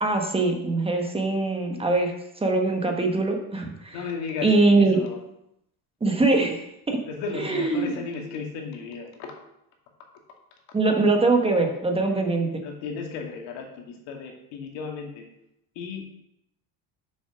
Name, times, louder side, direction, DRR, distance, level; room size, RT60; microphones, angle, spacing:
voice 1, 0.0-4.0 4.4-5.0 6.0-7.0 7.3-7.9 10.7-12.5, right 3 dB, 15° right, 3 dB, 1.2 m, -22 dB
voice 2, 3.9-5.2 7.1-9.3 12.6-15.2 15.8-16.1, left 5 dB, 75° left, 2 dB, 2.1 m, -35 dB
6.9 x 6.2 x 6.0 m, 0.81 s
cardioid pair, 140°, 42 cm